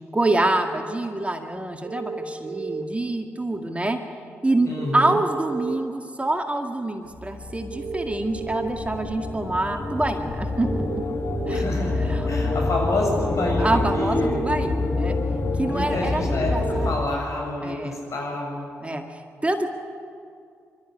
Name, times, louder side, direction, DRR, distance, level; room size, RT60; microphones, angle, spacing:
voice 1, 0.1-4.0 4.4-11.2 11.5-11.6 12.0-12.3 13.6-15.2 15.6-16.9 17.6-18.0 18.8-19.7, right 2 dB, 20° right, 4 dB, 2.0 m, -26 dB
sound 1, 1.8-2.8 4.8-5.8 7.7-8.7 10.6-11.6 13.6-14.5 16.5-16.9, right 4 dB, 50° right, 3.5 m, -32 dB
voice 2, 4.7-5.1 11.5-12.0 12.3-14.4 15.6-18.7, left 1 dB, 55° left, 0 dB, 7.5 m, -28 dB
sound 2, 7.2-17.1, left 3 dB, 40° left, 2.1 m, -27 dB
24.0 x 13.0 x 9.8 m, 2.4 s
hypercardioid pair, 45°, 6 cm